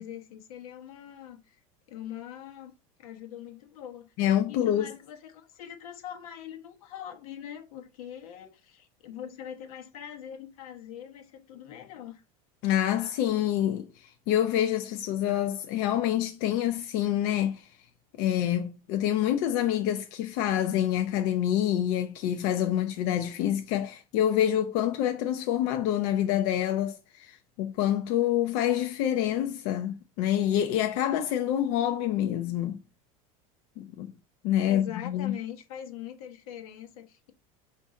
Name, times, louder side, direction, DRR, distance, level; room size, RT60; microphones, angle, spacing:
voice 1, 0.0-1.6 1.9-2.7 3.0-4.1 4.5-12.2 34.7-37.3, left 10 dB, 85° left, 0.9 m, -42 dB
voice 2, 4.2-4.9 12.6-17.7 18.2-32.8 33.8-34.1 34.4-35.4, left 11 dB, 65° left, 0.5 m, -27 dB
4.0 x 2.6 x 3.6 m
supercardioid pair, 115°, 18 cm